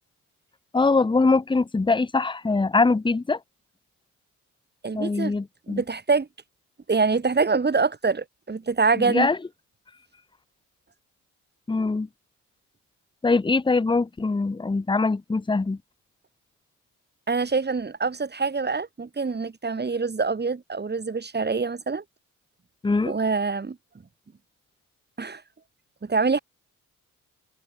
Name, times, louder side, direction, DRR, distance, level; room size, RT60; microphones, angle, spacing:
voice 1, 0.7-3.4 4.9-5.8 9.1-9.4 11.7-12.1 13.2-15.8 22.8-23.1, left 3 dB, 15° left, 0.9 m, -22 dB
voice 2, 4.8-5.3 5.7-6.3 6.9-9.3 17.3-22.0 23.1-23.8 25.2-25.4 26.0-26.4, right 4 dB, 30° right, 3.7 m, -25 dB
cardioid pair, 70°, 32 cm